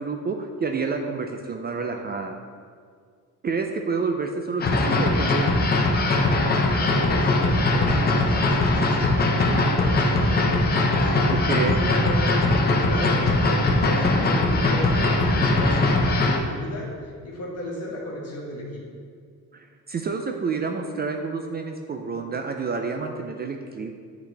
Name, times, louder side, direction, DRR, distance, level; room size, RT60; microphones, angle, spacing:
voice 1, 0.0-2.3 3.4-5.6 11.3-11.8 19.5-23.9, right 4 dB, 30° right, 4 dB, 0.4 m, -29 dB
sound 1, 4.6-16.4, left 2 dB, 30° left, 0.6 m, -21 dB
voice 2, 6.7-11.1 11.6-18.8, equal, 50° left, -3 dB, 1.6 m, -34 dB
8.3 x 4.1 x 3.3 m, 2.1 s
cardioid pair, 130°, 31 cm